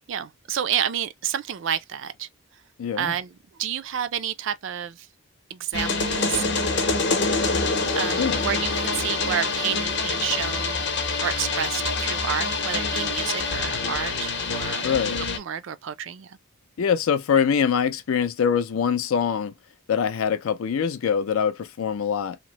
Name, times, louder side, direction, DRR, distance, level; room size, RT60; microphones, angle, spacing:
voice 1, 0.1-2.3 3.0-3.3 3.6-5.1 5.5-6.5 7.9-10.8 11.2-14.9 15.4-16.3, right 9 dB, 55° right, 0.3 m, -29 dB
voice 2, 2.8-3.2 8.2-8.5 14.8-15.3 16.8-19.5 19.9-22.4, left 7 dB, 70° left, 0.4 m, -24 dB
sound 1, 5.7-15.4, left 3 dB, 50° left, 0.8 m, -26 dB
2.9 x 2.0 x 2.9 m
head